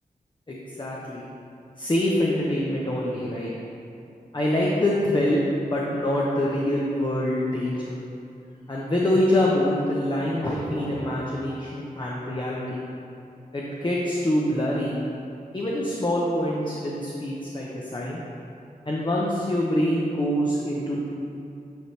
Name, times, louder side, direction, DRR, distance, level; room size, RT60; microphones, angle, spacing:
voice 1, 0.5-1.2 1.8-3.5 4.3-5.4 5.7-8.0 8.7-12.8 13.5-15.0 15.5-18.2 18.9-21.0, left 1 dB, 30° left, -5 dB, 0.8 m, -25 dB
9.5 x 4.9 x 3.3 m, 2.7 s
wide cardioid pair, 80°, 16 cm